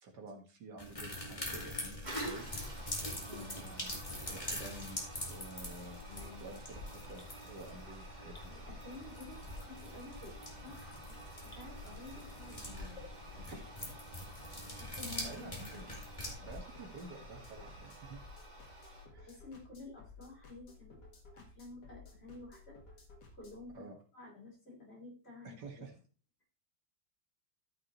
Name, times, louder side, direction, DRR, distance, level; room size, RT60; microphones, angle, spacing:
voice 1, 0.0-2.5 3.4-6.0 6.4-6.8 7.1-8.5 13.5-13.6 13.9-14.0 14.2-14.3 15.2-15.9 16.4-18.2 19.1-19.4 23.7-24.0 25.4-26.0, right 2 dB, 75° right, 3 dB, 2.3 m, -50 dB
sound 1, 0.8-16.3, left 1 dB, 20° left, 2.2 m, -44 dB
Toilet flush, 2.0-19.1, right 1 dB, 25° right, 2.2 m, -50 dB
voice 2, 6.1-6.5 8.5-11.2 11.4-13.0 13.4-13.6 14.7-15.5 19.2-21.0 21.3-22.8 23.4-25.9, left 3 dB, 35° left, -2 dB, 3.5 m, -51 dB
sound 2, 16.3-23.7, left 4 dB, 70° left, 2.4 m, -56 dB
13.5 x 6.0 x 3.1 m, 0.38 s
omnidirectional pair, 1.9 m